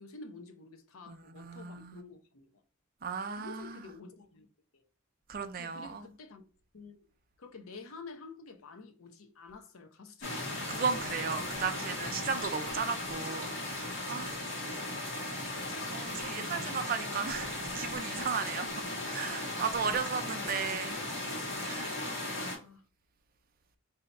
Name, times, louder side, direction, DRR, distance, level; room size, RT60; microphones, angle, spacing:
voice 1, 0.0-2.5 3.4-4.5 4.7-4.8 5.6-6.4 6.7-7.0 7.4-10.7 16.6-16.8 20.2-20.8 22.6-22.8, left 3 dB, 80° left, 0.7 m, -50 dB
voice 2, 1.1-2.0 3.0-3.8 5.3-6.0 10.7-14.3 15.9-18.7 19.1-21.0 21.6-21.9, right 6 dB, 40° right, 0.5 m, -35 dB
sound 1, 10.2-22.6, left 2 dB, 55° left, 2.1 m, -37 dB
3.3 x 2.8 x 3.9 m
head